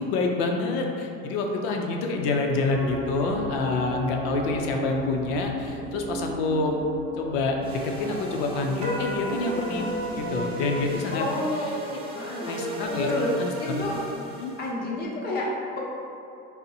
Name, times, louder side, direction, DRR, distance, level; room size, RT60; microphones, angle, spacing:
voice 1, 0.0-6.8 7.2-11.2 12.4-13.1 13.4-13.8 14.4-14.5, left 3 dB, 80° left, 2 dB, 0.5 m, -27 dB
sound 1, 2.7-11.0, right 1 dB, 65° right, 0.8 m, -35 dB
sound 2, 5.6-14.0 15.0-15.1, equal, 35° right, 0.9 m, -47 dB
sound 3, 7.6-14.7, equal, 20° right, 0.4 m, -38 dB
voice 2, 11.1-11.8 12.1-12.5 12.9-13.3 13.6-14.0 14.6-15.8, left 1 dB, 35° left, -4 dB, 0.7 m, -29 dB
2.6 x 2.0 x 4.0 m, 2.6 s
supercardioid pair, 130°, 30 cm